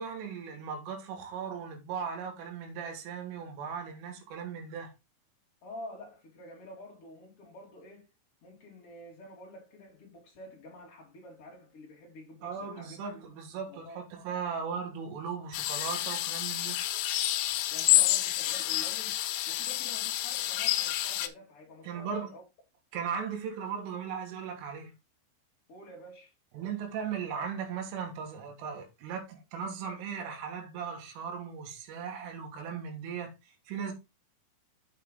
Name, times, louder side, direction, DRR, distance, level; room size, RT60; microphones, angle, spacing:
voice 1, 0.0-4.9 12.4-16.8 21.8-22.3 22.9-24.9 26.5-33.9, right 6 dB, 80° right, 4.2 m, -37 dB
voice 2, 5.6-8.1 8.4-13.3 13.7-14.0 17.7-22.4 25.7-26.3, left 1 dB, 45° left, 1.9 m, -49 dB
sound 1, 15.5-21.3, left 15 dB, 85° left, 3.3 m, -29 dB
8.5 x 5.5 x 3.7 m
omnidirectional pair, 5.7 m